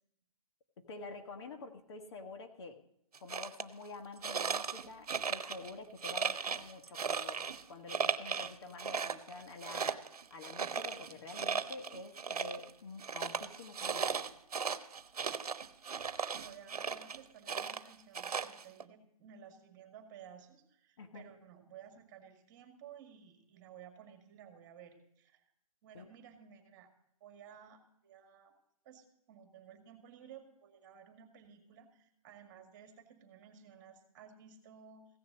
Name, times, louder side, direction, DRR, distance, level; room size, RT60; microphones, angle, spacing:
voice 1, 0.8-2.8 3.2-14.2 21.0-21.2 25.9-26.1, left 3 dB, 45° left, 6 dB, 1.5 m, -48 dB
sound 1, 3.1-3.6 4.2-5.7 6.0-7.6 7.9-8.5 8.8-12.7 13.0-17.2 17.5-18.8, right 6 dB, 85° right, 1.0 m, -37 dB
voice 2, 16.3-25.4 25.8-26.9 27.2-28.5 28.8-35.1, right 8 dB, 30° right, 6 dB, 2.1 m, -55 dB
15.5 x 6.7 x 7.9 m, 0.75 s
hypercardioid pair, 155°, 19 cm